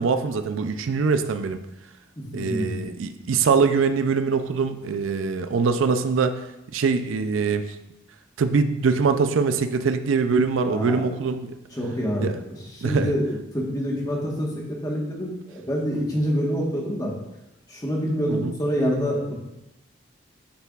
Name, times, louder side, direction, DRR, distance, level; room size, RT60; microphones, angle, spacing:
voice 1, 0.0-1.6 2.3-6.4 6.7-7.6 8.4-11.5 12.2-12.3 12.8-13.1 18.3-18.5, right 5 dB, 80° right, 9 dB, 0.4 m, -23 dB
voice 2, 2.2-2.8 10.7-11.1 11.7-17.1 17.7-19.3, equal, 20° left, -3 dB, 1.2 m, -27 dB
10.0 x 4.5 x 2.4 m, 0.91 s
head